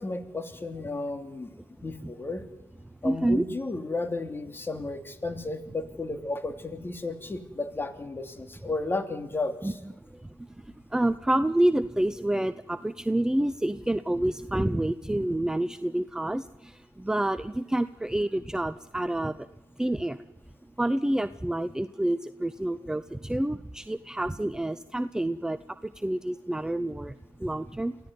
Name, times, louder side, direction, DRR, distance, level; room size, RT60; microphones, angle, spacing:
voice 1, 0.0-1.5 1.8-2.4 3.0-9.8, left 2 dB, 25° left, 8 dB, 2.8 m, -33 dB
voice 2, 3.0-3.4 9.6-9.8 10.1-10.3 10.6-10.7 10.9-19.5 19.8-20.2 20.8-27.1 27.4-28.0, right 1 dB, 5° right, 13 dB, 0.7 m, -28 dB
24.0 x 15.5 x 9.5 m, 1.0 s
supercardioid pair, 60°, 9 cm